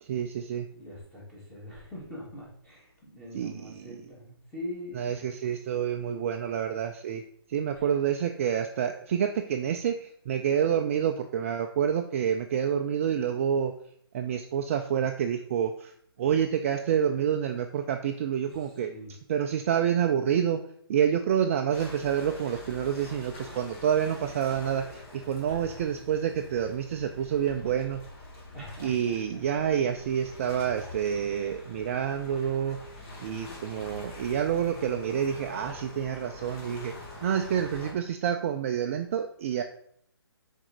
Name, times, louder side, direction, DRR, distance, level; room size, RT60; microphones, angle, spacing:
voice 1, 0.0-0.7 3.3-3.9 4.9-7.2 7.5-13.7 14.1-15.9 16.2-18.9 19.3-20.6 20.9-28.0 28.8-32.8 33.2-36.9 37.2-39.6, right 8 dB, 35° right, 6 dB, 0.4 m, -28 dB
voice 2, 0.7-5.3 7.7-7.9 18.5-19.1 25.5-25.7 28.5-29.1, equal, 5° left, -8 dB, 3.0 m, -43 dB
sound 1, 21.7-37.9, left 2 dB, 30° left, 1.8 m, -45 dB
6.2 x 4.4 x 4.9 m, 0.66 s
hypercardioid pair, 145°, 13 cm